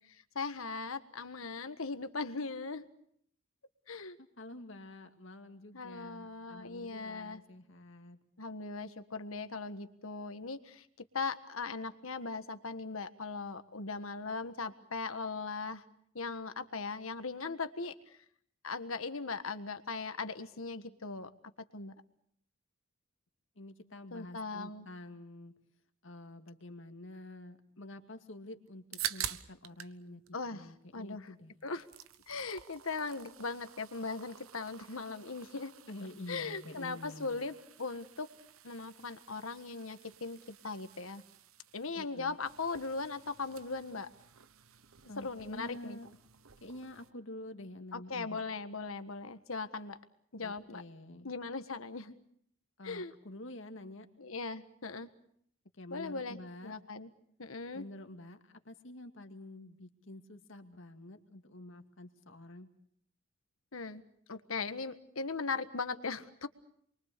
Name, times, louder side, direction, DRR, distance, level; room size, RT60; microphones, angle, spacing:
voice 1, 0.0-2.9 3.9-4.2 5.7-7.4 8.4-10.9 11.1-15.8 16.1-18.2 18.6-21.3 21.7-21.9 24.1-24.9 30.3-31.3 31.6-31.9 32.3-35.7 36.3-38.3 38.6-41.2 41.7-44.1 45.2-46.0 47.9-50.0 50.3-50.8 51.2-52.2 52.8-53.1 54.2-55.1 55.9-57.1 57.4-57.8 63.7-64.0 64.3-66.5, left 4 dB, 85° left, 10 dB, 1.6 m, -39 dB
voice 2, 4.4-8.2 23.6-25.5 26.0-31.5 35.9-37.4 42.0-42.4 45.1-46.1 46.6-48.4 50.4-51.3 52.8-54.1 55.8-56.7 57.7-62.7, left 1 dB, 65° left, 6 dB, 2.2 m, -48 dB
sound 1, 28.7-30.0 30.3-31.3 31.6-47.1, right 10 dB, 85° right, 1.1 m, -48 dB
29.0 x 23.0 x 6.8 m, 0.68 s
head